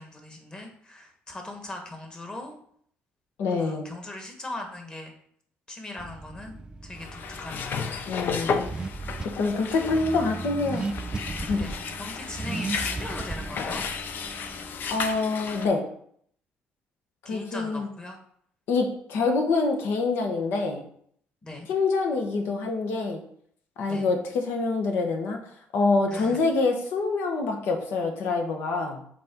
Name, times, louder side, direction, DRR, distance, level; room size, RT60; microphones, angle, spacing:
voice 1, 0.0-2.6 3.6-5.1 5.7-7.9 10.0-10.1 11.5-13.9 17.2-18.2 21.4-21.7 23.9-24.1 26.1-26.4, left 2 dB, 20° left, 3 dB, 1.6 m, -39 dB
voice 2, 3.4-3.9 8.1-8.7 9.4-10.8 11.5-11.6 14.9-15.8 17.2-17.9 18.7-20.8 21.7-23.2 23.8-25.4 25.7-29.0, left 3 dB, 75° left, 3 dB, 1.4 m, -26 dB
Car / Accelerating revving vroom, 6.0-15.2, right 3 dB, 20° right, 0.3 m, -37 dB
sound 1, 7.0-15.7, left 5 dB, 55° left, 0.7 m, -33 dB
6.2 x 4.2 x 4.5 m, 0.63 s
cardioid pair, 115°, 4 cm